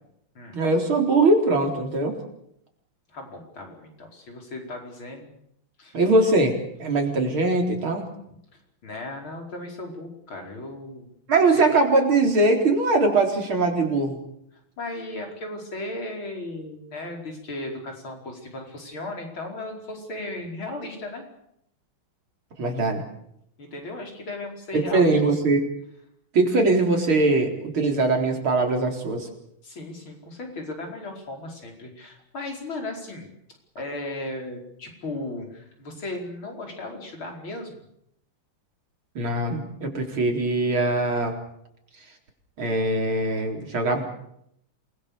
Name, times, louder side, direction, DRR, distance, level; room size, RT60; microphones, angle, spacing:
voice 1, 0.5-2.2 5.9-8.0 11.3-14.2 22.6-23.0 24.7-25.6 26.3-29.3 39.1-41.3 42.6-44.0, right 2 dB, 85° right, 2 dB, 4.9 m, -21 dB
voice 2, 3.1-5.3 5.8-6.0 8.3-8.4 8.8-11.1 14.8-21.2 23.6-25.2 29.6-33.3 33.8-37.8, left 2 dB, 80° left, 1 dB, 5.8 m, -36 dB
28.0 x 21.0 x 7.0 m, 0.75 s
omnidirectional pair, 2.2 m